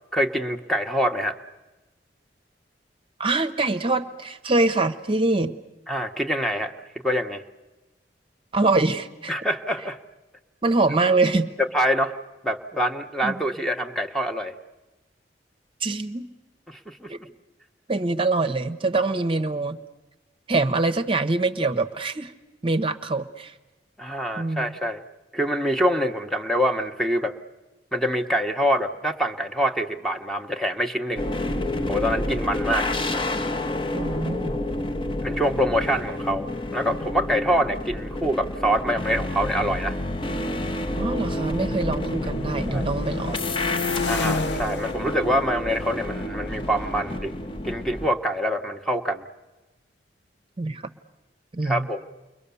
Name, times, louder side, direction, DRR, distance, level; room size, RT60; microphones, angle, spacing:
voice 1, 0.1-1.4 5.9-6.7 7.0-7.4 9.3-10.0 11.7-12.1 12.4-14.5 16.7-17.1 24.0-25.0 25.3-27.3 27.9-31.3 31.9-32.9 35.2-36.5 36.7-40.0 42.7-42.9 43.3-43.4 44.1-47.3 47.6-49.2 51.6-52.0, equal, ahead, 5 dB, 0.9 m, -25 dB
voice 2, 3.2-5.5 8.5-9.3 10.6-11.5 13.2-13.4 15.8-16.3 17.1-17.2 17.9-19.8 20.5-22.3 22.6-23.5 24.4-24.7 33.9-34.6 41.0-43.4 50.6-50.8 51.5-51.9, right 3 dB, 30° right, 9 dB, 0.8 m, -24 dB
sound 1, 31.2-48.1, left 1 dB, 30° left, 0.8 m, -29 dB
sound 2, 36.4-36.8 37.5-41.5 41.8-48.5, left 4 dB, 75° left, 0.8 m, -35 dB
29.5 x 22.0 x 6.9 m, 1.1 s
head